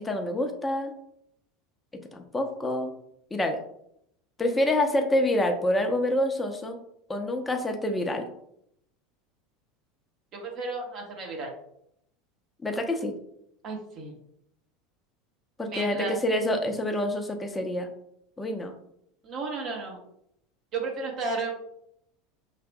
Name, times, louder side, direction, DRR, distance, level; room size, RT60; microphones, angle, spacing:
voice 1, 0.0-0.9 2.1-2.9 3.3-3.6 4.4-6.8 7.1-8.2 12.6-13.2 15.6-17.9 18.4-18.7, left 1 dB, 15° left, 4 dB, 0.7 m, -27 dB
voice 2, 10.3-11.5 13.6-14.1 15.7-16.2 19.2-20.0 20.7-21.5, right 3 dB, 45° right, 0 dB, 1.3 m, -33 dB
5.7 x 3.4 x 2.3 m, 0.74 s
figure-of-eight pair, 75°, 0 cm